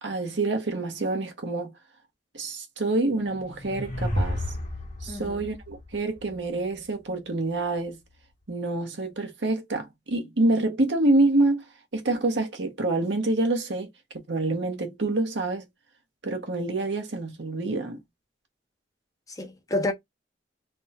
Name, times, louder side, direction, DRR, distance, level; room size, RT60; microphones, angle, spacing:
voice 1, 0.0-1.7 2.3-4.4 5.0-8.0 8.5-11.6 11.9-13.9 14.1-15.7 16.2-18.0, right 2 dB, 70° right, 1.1 m, -27 dB
sound 1, 3.2-6.7, left 1 dB, 40° left, 1.3 m, -32 dB
voice 2, 5.1-5.5 19.3-19.9, left 2 dB, 20° left, 0.8 m, -29 dB
3.5 x 2.3 x 4.2 m
head